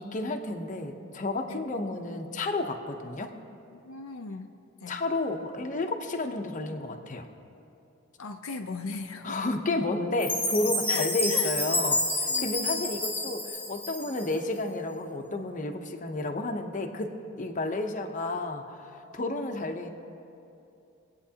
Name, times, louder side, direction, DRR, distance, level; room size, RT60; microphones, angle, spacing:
voice 1, 0.0-3.3 4.9-7.3 9.2-17.1 17.4-18.6 19.1-19.9, left 2 dB, 35° left, 4 dB, 0.8 m, -31 dB
voice 2, 3.8-4.5 4.8-5.0 8.2-9.4 10.9-11.6 12.3-12.8, left 3 dB, 75° left, 4 dB, 0.6 m, -37 dB
Chime, 10.2-14.4, left 2 dB, 10° left, 0.9 m, -29 dB
24.0 x 8.6 x 2.9 m, 2.7 s
head